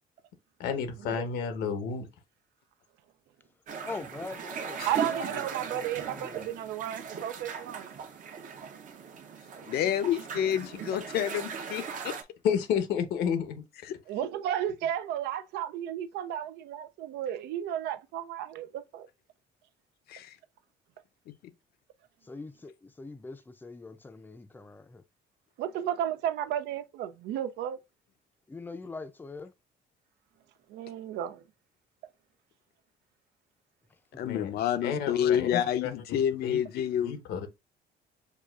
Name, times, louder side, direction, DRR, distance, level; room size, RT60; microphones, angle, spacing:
voice 1, 0.6-2.0 12.4-13.6 34.2-34.5 34.8-35.9 36.4-36.6 37.0-37.5, left 7 dB, 85° left, 1.0 m, -30 dB
sound 1, 3.7-12.2, right 6 dB, 50° right, 0.7 m, -39 dB
voice 2, 3.8-6.5 22.2-25.0 28.5-29.5 33.9-34.6, left 3 dB, 10° left, 0.5 m, -43 dB
voice 3, 4.9-7.9 14.1-19.1 25.6-27.8 30.7-31.4, right 10 dB, 85° right, 0.5 m, -33 dB
voice 4, 9.6-12.1 13.8-14.0 20.1-20.4 34.2-37.2, left 10 dB, 65° left, 0.6 m, -29 dB
6.5 x 2.4 x 2.4 m
cardioid pair, 110°, 17 cm